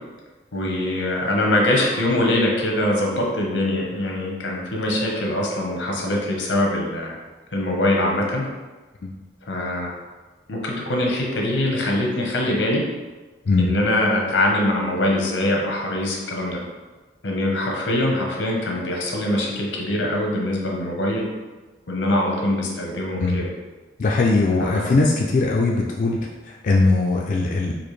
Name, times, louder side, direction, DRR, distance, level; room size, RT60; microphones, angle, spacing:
voice 1, 0.5-7.1 7.5-8.5 9.5-9.9 10.5-12.8 13.6-16.6 17.2-21.2 21.9-23.5 24.6-25.0, left 1 dB, 85° left, -1 dB, 0.8 m, -23 dB
voice 2, 24.0-26.2 26.5-27.7, left 3 dB, 45° left, -1 dB, 0.3 m, -20 dB
4.1 x 2.5 x 3.1 m, 1.3 s
head